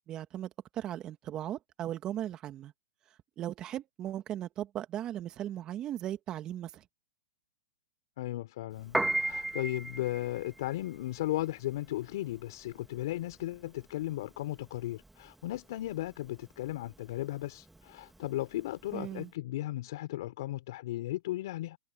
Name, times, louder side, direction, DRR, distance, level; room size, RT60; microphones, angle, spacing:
voice 1, 0.1-2.7 3.4-6.8 18.9-19.3, right 12 dB, 30° right, 2.2 m, -37 dB
voice 2, 8.2-21.8, left 15 dB, 60° left, 4.7 m, -36 dB
Piano, 8.8-19.2, right 2 dB, 5° right, 2.3 m, -37 dB
hypercardioid pair, 130°, 3 cm